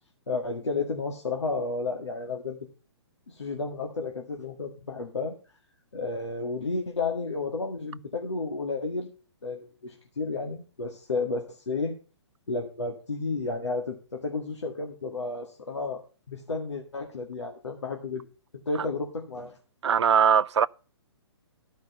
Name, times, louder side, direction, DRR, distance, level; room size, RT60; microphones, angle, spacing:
voice 1, 0.3-2.6 3.3-5.3 5.9-9.1 9.4-11.9 12.5-18.2 18.7-19.6, left 3 dB, 85° left, 1.8 m, -32 dB
voice 2, 19.8-20.7, right 7 dB, 85° right, 0.4 m, -20 dB
13.0 x 5.3 x 6.4 m
hypercardioid pair, 135°, 14 cm